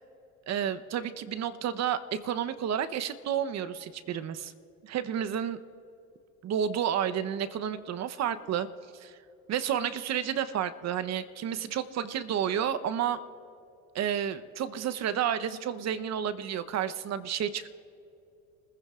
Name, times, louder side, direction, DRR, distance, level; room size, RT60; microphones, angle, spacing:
voice 1, 0.5-4.5 4.8-5.6 6.4-8.7 8.9-9.2 9.5-13.2 13.9-17.7, right 9 dB, 50° right, 12 dB, 0.9 m, -31 dB
28.0 x 15.0 x 2.5 m, 2.7 s
supercardioid pair, 80°, 35 cm